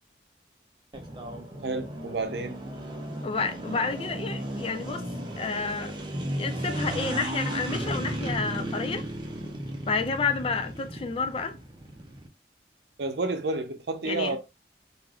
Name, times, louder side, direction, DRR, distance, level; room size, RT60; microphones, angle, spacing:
sound 1, 0.9-12.3, right 1 dB, 25° right, 0.5 m, -35 dB
voice 1, 1.6-2.6 13.0-14.4, right 3 dB, 70° right, 0.6 m, -30 dB
voice 2, 3.2-5.1 5.4-6.0 6.3-9.1 9.9-11.6 14.0-14.4, left 4 dB, 30° left, 0.3 m, -30 dB
3.3 x 2.5 x 2.3 m
head